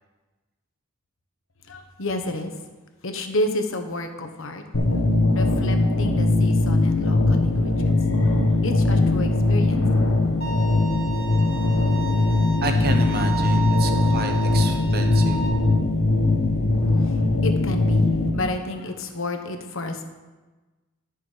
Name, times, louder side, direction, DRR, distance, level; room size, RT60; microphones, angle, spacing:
voice 1, 1.7-2.6 3.0-4.6 5.3-8.0 8.2-8.3 8.6-9.8 17.0-20.0, left 1 dB, 65° left, 6 dB, 1.1 m, -30 dB
sound 1, 4.7-18.3, left 2 dB, 80° left, 1.5 m, -20 dB
Bowed string instrument, 10.4-15.5, right 5 dB, 45° left, 2.0 m, -33 dB
voice 2, 12.6-15.4, right 3 dB, 45° right, 5 dB, 1.0 m, -30 dB
11.5 x 6.8 x 5.0 m, 1.2 s
head